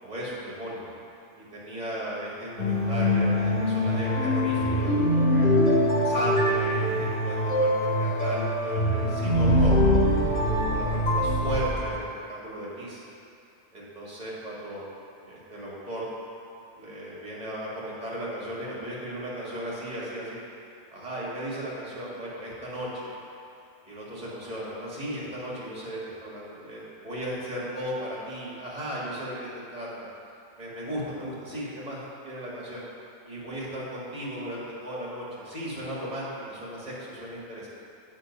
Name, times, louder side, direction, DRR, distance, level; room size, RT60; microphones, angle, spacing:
voice 1, 0.0-0.9 1.4-10.0 10.6-13.0 13.7-14.8 15.2-16.1 16.8-20.4 20.9-23.1 23.8-30.1 30.6-32.8 33.3-37.7, right 1 dB, 35° right, -7 dB, 2.0 m, -36 dB
sound 1, 2.6-11.8, equal, 60° left, 2.4 m, -23 dB
9.3 x 4.4 x 5.3 m, 2.6 s
omnidirectional pair, 1.3 m